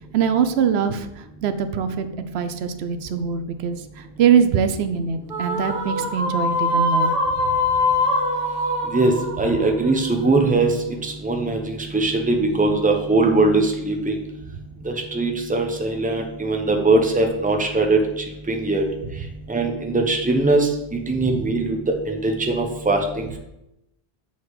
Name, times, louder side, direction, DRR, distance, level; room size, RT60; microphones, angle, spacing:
voice 1, 0.1-7.1, right 7 dB, 80° right, 10 dB, 0.8 m, -22 dB
sound 1, 5.3-10.7, left 2 dB, 50° right, 2.0 m, -23 dB
voice 2, 8.9-10.7 11.0-14.2 14.8-18.0 18.5-18.8 19.5-20.7 21.1-23.4, right 2 dB, 10° right, 3 dB, 0.7 m, -21 dB
7.5 x 4.2 x 4.7 m, 0.87 s
omnidirectional pair, 1.1 m